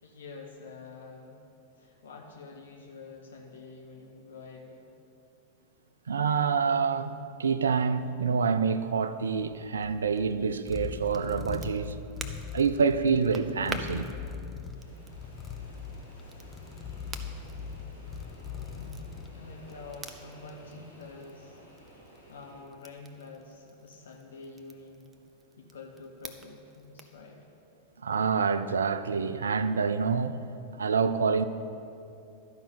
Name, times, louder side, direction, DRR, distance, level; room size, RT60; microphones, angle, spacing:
voice 1, 0.0-1.4 1.7-4.9 18.4-19.0 19.3-21.6 22.3-25.1 25.6-27.5, left 3 dB, 65° left, 0.9 m, -47 dB
voice 2, 6.1-11.9 12.5-14.1 28.0-30.4 30.8-31.4, right 5 dB, 70° right, 0.4 m, -27 dB
sound 1, 9.4-20.0, left 6 dB, 15° left, 0.8 m, -41 dB
Crackle, 10.6-27.2, right 3 dB, 15° right, 0.7 m, -48 dB
sound 2, 14.7-22.6, equal, 90° left, 1.9 m, -52 dB
12.0 x 5.6 x 7.8 m
figure-of-eight pair, 90°, 0 cm